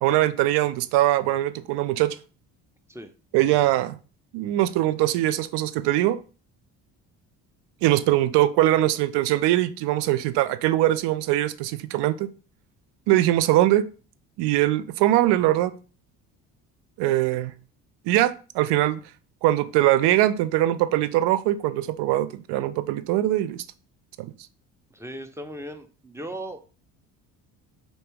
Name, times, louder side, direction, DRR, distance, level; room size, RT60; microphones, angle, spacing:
voice 1, 0.0-2.2 3.3-4.0 4.3-6.2 7.8-12.3 13.1-13.8 14.4-15.7 17.0-17.5 18.1-19.0 19.4-23.6, right 14 dB, 65° right, 0.5 m, -22 dB
voice 2, 24.9-26.6, right 1 dB, 5° right, 0.5 m, -37 dB
4.1 x 2.8 x 3.4 m
hypercardioid pair, 60°, 45 cm